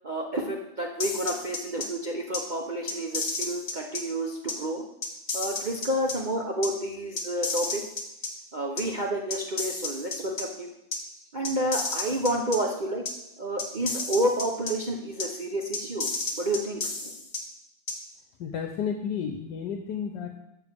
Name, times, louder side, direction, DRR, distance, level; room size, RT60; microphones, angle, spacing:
voice 1, 0.0-4.8 5.3-7.8 8.5-10.7 11.3-13.0 13.4-16.1 16.4-17.1, right 1 dB, 45° right, 0 dB, 0.5 m, -30 dB
sound 1, 1.0-1.9 2.3-2.4 2.9-4.0 4.5-4.6 5.0-6.1 6.6-6.7 7.2-8.3 8.8-8.9 9.3-10.4 10.9-11.0 11.4-12.6 13.1-13.2 13.6-14.7 15.2-15.3 15.7-17.4 17.9-18.0, left 3 dB, 50° left, 1.7 m, -31 dB
voice 2, 18.4-20.4, left 7 dB, 75° left, 4 dB, 1.3 m, -32 dB
7.1 x 6.6 x 6.7 m, 0.87 s
omnidirectional pair, 1.9 m